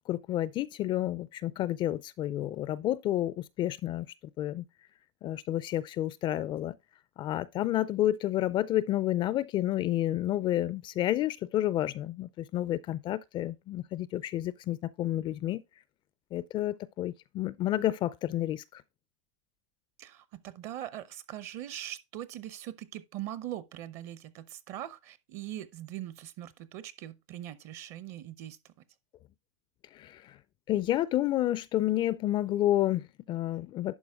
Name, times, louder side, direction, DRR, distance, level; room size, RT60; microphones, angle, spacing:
voice 1, 0.1-4.1 4.4-4.6 5.2-6.7 7.2-15.6 16.3-18.8 29.9-30.4 30.7-34.0, left 13 dB, 30° left, 0.4 m, -30 dB
voice 2, 20.0-28.6, right 12 dB, 45° right, 0.7 m, -41 dB
11.0 x 4.6 x 3.4 m
hypercardioid pair, 125°, 16 cm